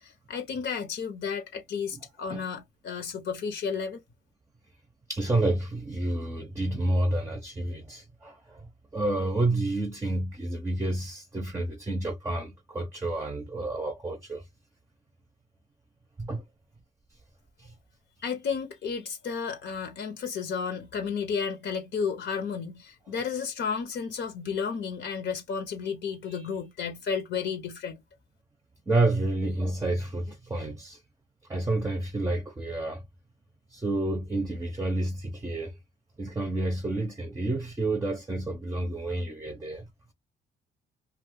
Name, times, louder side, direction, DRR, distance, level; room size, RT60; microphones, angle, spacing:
voice 1, 0.0-4.0 18.2-28.0, left 6 dB, 65° left, 0.9 m, -32 dB
voice 2, 5.1-8.6 8.9-14.4 16.2-16.4 17.6-17.7 28.9-31.0 31.5-33.0 33.7-35.7 36.2-39.8, right 2 dB, 15° right, 0.7 m, -29 dB
2.4 x 2.3 x 3.6 m
cardioid pair, 90°, 20 cm